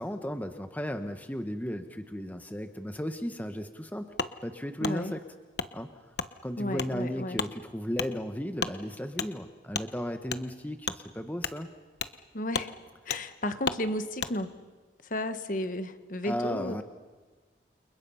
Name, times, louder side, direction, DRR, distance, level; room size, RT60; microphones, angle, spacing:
voice 1, 0.0-4.2 4.4-5.2 5.7-5.9 6.4-11.7 16.2-16.8, equal, 10° left, 7 dB, 1.0 m, -35 dB
Wood, 4.2-4.3 4.8-5.0 5.6-5.7 6.2-6.3 6.8-6.9 7.3-7.5 7.9-8.1 8.6-8.8 9.2-9.3 9.7-9.9 10.3-10.4 10.8-11.0 11.4-11.6 12.0-12.2 12.5-12.7 13.1-13.2 13.6-13.8 14.2-14.3, left 5 dB, 70° left, 1.1 m, -32 dB
voice 2, 4.8-5.1 6.6-7.4 12.3-12.7 13.0-14.5 15.0-16.8, left 1 dB, 45° left, 9 dB, 1.3 m, -33 dB
29.5 x 28.5 x 5.7 m, 1.4 s
head